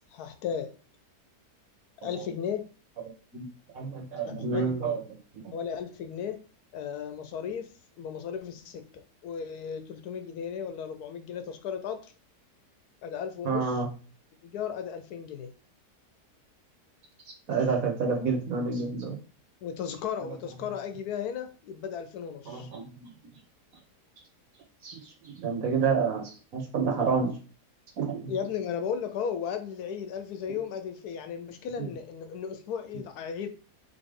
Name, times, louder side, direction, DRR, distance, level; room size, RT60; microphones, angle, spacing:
voice 1, 0.1-0.7 2.0-2.6 4.3-5.0 5.5-6.4 6.7-12.1 13.0-13.8 14.4-15.5 19.6-22.7 28.3-33.5, left 7 dB, 70° left, 1.1 m, -35 dB
voice 2, 3.7-5.0 5.4-5.5 13.4-13.9 17.3-19.2 22.5-23.1 24.8-27.4 28.0-28.3, right 5 dB, 60° right, 1.4 m, -29 dB
4.0 x 3.6 x 3.6 m
omnidirectional pair, 1.8 m